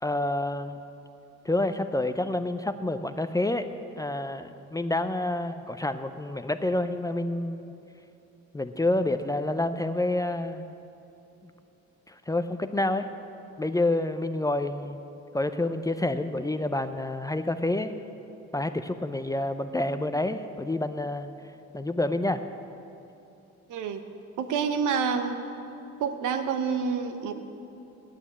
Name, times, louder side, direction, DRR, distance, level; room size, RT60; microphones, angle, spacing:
voice 1, 0.0-0.8 1.4-3.7 4.0-7.7 8.5-10.6 12.1-13.1 13.6-15.0 15.3-17.9 18.5-21.3 21.7-22.4, left 2 dB, 10° left, 9 dB, 0.4 m, -28 dB
voice 2, 23.7-24.1 24.4-25.4 26.0-27.3, right 6 dB, 85° right, 7 dB, 0.9 m, -28 dB
9.1 x 9.1 x 8.5 m, 2.8 s
cardioid pair, 90°, 30 cm